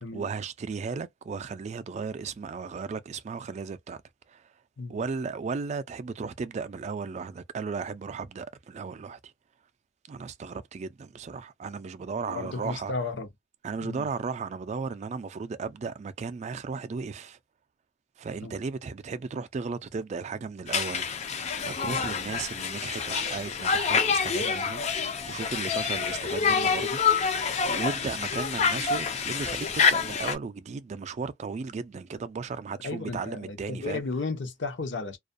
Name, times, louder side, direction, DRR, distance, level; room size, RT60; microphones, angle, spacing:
voice 1, 0.1-4.0 4.3-4.4 4.9-9.2 10.1-12.9 13.6-17.4 18.2-21.2 21.6-27.3 27.7-34.0, right 5 dB, 35° right, 0.3 m, -35 dB
voice 2, 12.2-13.3 13.8-14.1 18.4-18.5 28.3-28.4 32.8-35.2, left 3 dB, 70° left, 0.7 m, -34 dB
Conversation, 20.7-30.4, left 6 dB, 35° left, 0.4 m, -27 dB
2.3 x 2.1 x 2.5 m
head